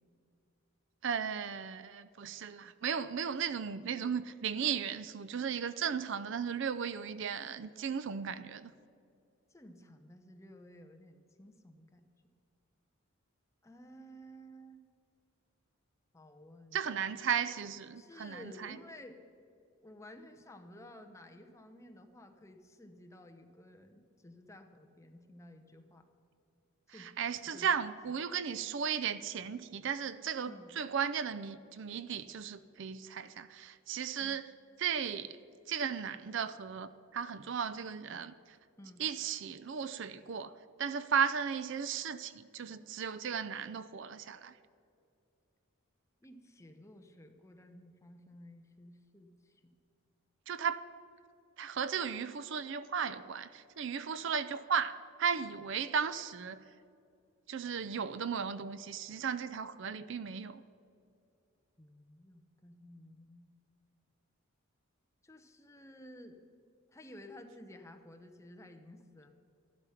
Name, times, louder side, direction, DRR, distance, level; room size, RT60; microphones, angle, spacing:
voice 1, 1.0-8.7 16.7-18.8 27.0-34.5 34.8-35.4 35.7-38.3 39.0-40.5 40.8-44.5 50.5-50.8 51.6-56.6 57.5-60.6, right 7 dB, 55° right, 0.4 m, -35 dB
voice 2, 9.5-12.0 13.6-14.8 16.1-16.8 18.0-19.2 19.8-26.0 26.9-27.1 27.4-27.7 28.1-28.2 30.5-30.7 34.2-34.4 38.8-39.0 46.2-49.8 61.8-63.4 65.2-66.4 66.9-69.3, left 1 dB, 15° left, 0.8 m, -54 dB
13.0 x 12.0 x 5.7 m
head